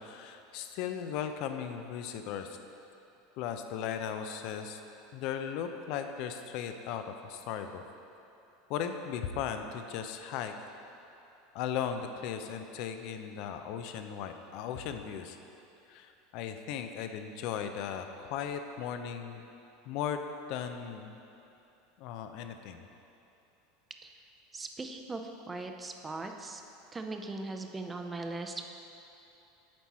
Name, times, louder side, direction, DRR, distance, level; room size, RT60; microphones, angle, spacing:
voice 1, 0.0-2.6 3.4-4.8 5.1-7.8 8.7-10.5 11.5-15.4 15.9-19.5 19.9-20.2 20.5-21.2 22.0-22.8, left 8 dB, 60° left, 7 dB, 0.5 m, -37 dB
voice 2, 24.5-25.2 25.5-26.6 26.9-28.7, right 3 dB, 20° right, 5 dB, 0.6 m, -39 dB
7.4 x 4.6 x 4.2 m, 2.8 s
hypercardioid pair, 95°, 0 cm